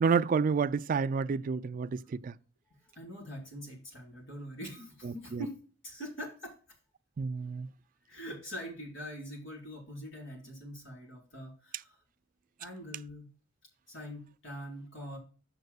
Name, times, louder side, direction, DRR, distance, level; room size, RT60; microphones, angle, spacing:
voice 1, 0.0-2.3 5.0-5.4 7.2-7.7, right 5 dB, 45° right, 0.3 m, -29 dB
voice 2, 2.9-5.6 5.8-6.6 8.1-12.0 12.6-13.3 13.9-15.2, equal, 70° left, 4.6 m, -43 dB
10.5 x 7.9 x 2.3 m
head